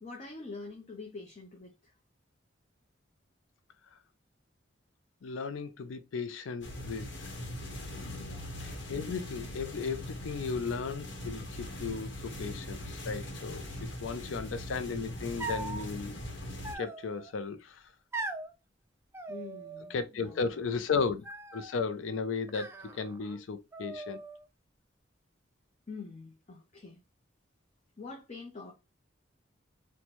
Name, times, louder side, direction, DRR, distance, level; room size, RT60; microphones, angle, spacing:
voice 1, 0.0-1.9 8.2-8.5 19.3-20.6 20.9-21.0 25.9-27.0 28.0-28.7, left 3 dB, 35° left, 0.6 m, -46 dB
voice 2, 5.2-7.3 7.9-8.3 8.6-16.2 16.7-17.9 19.9-21.3 21.5-24.2, left 5 dB, 85° left, 0.4 m, -35 dB
sound 1, 6.6-16.7, left 1 dB, 70° left, 1.0 m, -41 dB
sound 2, 15.4-15.8 16.6-17.3 18.1-18.5 19.1-20.0 20.2-20.8 21.2-21.8 22.5-23.4 23.7-24.5, right 3 dB, 15° right, 0.3 m, -41 dB
4.3 x 2.2 x 2.9 m
head